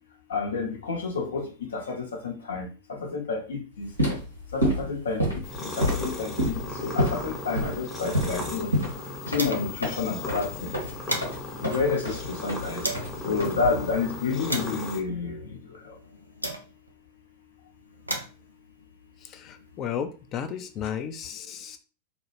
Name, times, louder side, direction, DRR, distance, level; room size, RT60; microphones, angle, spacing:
voice 1, 0.3-3.9 4.5-5.2 5.6-8.7 9.3-10.7 11.6-12.8 13.2-15.4, left 4 dB, 65° left, 0.6 m, -29 dB
sound 1, 3.8-14.0, equal, 90° left, 1.1 m, -29 dB
sound 2, 5.4-15.0, left 2 dB, 15° left, 0.8 m, -37 dB
sound 3, 8.1-9.9 10.2-10.3 10.6-13.2 13.8-17.0 17.7-19.9, right 1 dB, 85° right, 0.4 m, -37 dB
voice 2, 19.2-21.8, left 8 dB, 35° left, 0.3 m, -34 dB
2.2 x 2.0 x 3.1 m
figure-of-eight pair, 90°, 0 cm